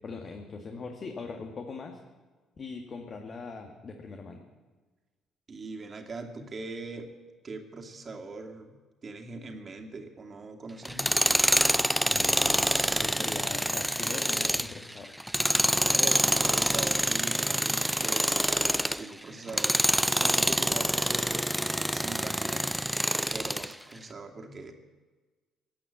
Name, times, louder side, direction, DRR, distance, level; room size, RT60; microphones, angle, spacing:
voice 1, 0.0-2.0 2.6-4.4 12.0-15.2, left 4 dB, 45° left, 3 dB, 1.8 m, -41 dB
voice 2, 5.5-7.1 7.4-11.4 15.8-19.8 20.1-22.6 23.3-24.7, right 3 dB, 40° right, 3 dB, 2.5 m, -41 dB
Tools, 10.8-19.0 19.5-23.7, equal, 5° right, 0.6 m, -26 dB
17.5 x 8.7 x 8.5 m, 1.3 s
hypercardioid pair, 50°, 0 cm